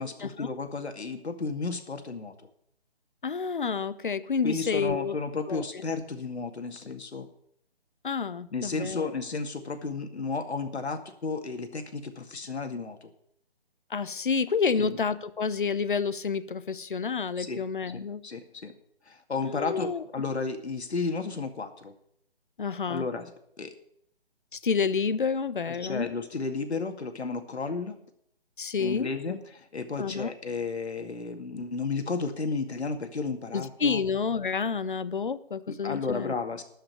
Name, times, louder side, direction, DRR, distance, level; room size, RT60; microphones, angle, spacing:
voice 1, 0.0-2.3 4.4-7.3 8.5-13.1 14.8-15.0 17.4-17.6 17.9-18.7 19.1-21.9 22.9-23.3 23.6-23.7 25.7-28.0 28.8-34.0 35.7-36.6, left 4 dB, 80° left, 6 dB, 2.2 m, -33 dB
voice 2, 3.2-5.1 5.5-5.6 8.0-9.1 13.9-18.2 19.4-20.0 22.6-23.0 24.5-26.1 28.6-29.1 30.0-30.3 33.5-36.4, left 5 dB, 50° left, 15 dB, 0.8 m, -29 dB
13.0 x 5.8 x 9.5 m, 0.70 s
hypercardioid pair, 175°, 33 cm